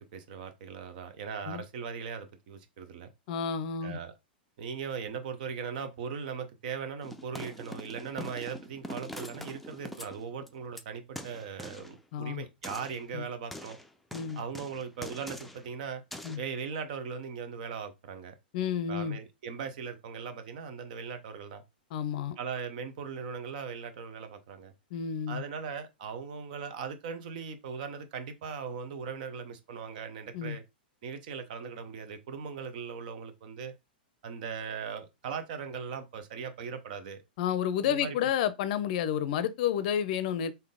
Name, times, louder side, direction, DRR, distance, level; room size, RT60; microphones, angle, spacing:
voice 1, 0.0-3.1 3.8-4.1 4.6-13.8 14.4-16.0 16.4-18.3 18.9-21.6 22.4-24.7 25.3-30.6 31.0-33.7 34.2-37.2 37.8-38.2, right 6 dB, 60° right, 0.8 m, -39 dB
voice 2, 3.3-4.0 12.1-12.5 13.1-13.2 14.1-14.4 16.2-16.4 18.5-19.2 21.9-22.4 24.9-25.4 30.3-30.6 37.4-40.5, left 9 dB, 55° left, 0.5 m, -30 dB
sound 1, 7.0-10.8 11.2-11.9 12.6-13.0 13.5-15.7 16.1-16.4, equal, ahead, 0.5 m, -43 dB
3.8 x 2.7 x 3.6 m
hypercardioid pair, 110°, 5 cm